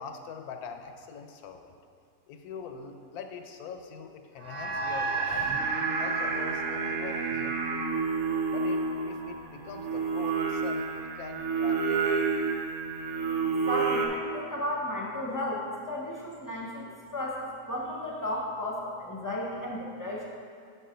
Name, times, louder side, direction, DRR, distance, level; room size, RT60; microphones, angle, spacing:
voice 1, 0.0-1.8 2.3-5.5 6.0-8.1 8.5-12.0, left 6 dB, 85° left, 6 dB, 1.1 m, -43 dB
sound 1, 4.4-9.1, right 4 dB, 50° right, 1.2 m, -33 dB
Singing, 5.3-14.1, right 4 dB, 75° right, 1.2 m, -30 dB
voice 2, 13.7-20.3, left 1 dB, 20° left, -3 dB, 0.6 m, -34 dB
6.4 x 4.7 x 5.0 m, 2.2 s
omnidirectional pair, 1.6 m